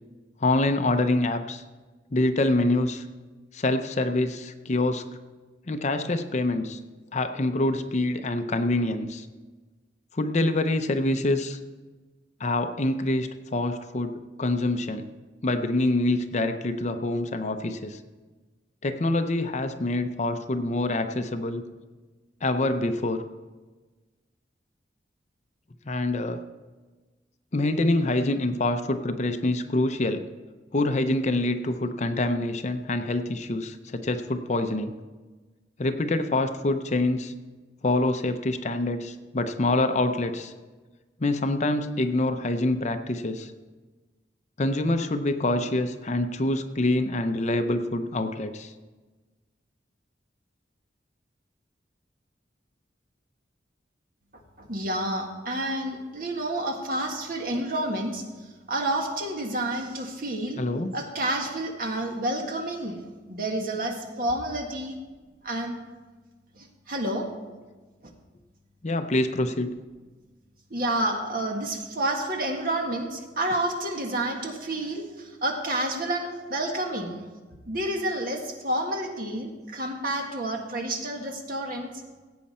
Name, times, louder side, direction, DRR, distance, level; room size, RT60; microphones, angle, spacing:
voice 1, 0.4-1.6 2.1-3.1 3.5-5.0 5.7-6.8 7.1-9.3 10.1-11.6 12.4-15.1 15.4-18.0 18.8-21.6 22.4-23.2 25.9-26.4 27.5-30.2 30.7-34.9 35.8-37.3 37.8-40.5 41.2-43.5 44.6-48.7 60.6-60.9 68.8-69.7, left 2 dB, 40° left, 8 dB, 0.6 m, -26 dB
voice 2, 54.6-58.2 58.7-60.6 60.9-63.0 63.3-65.0 65.4-65.8 66.6-67.3 70.7-77.2 77.7-81.9, right 1 dB, 50° right, 2 dB, 1.7 m, -29 dB
16.5 x 8.5 x 4.3 m, 1.3 s
head